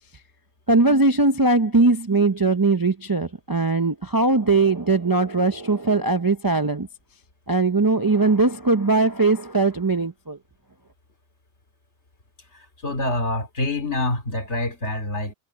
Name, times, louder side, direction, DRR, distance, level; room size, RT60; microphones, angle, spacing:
voice 1, 0.7-6.9 7.5-10.4, right 3 dB, 25° right, 0.5 m, -20 dB
voice 2, 12.5-15.3, left 2 dB, 65° left, 3.1 m, -26 dB
omnidirectional pair, 1.3 m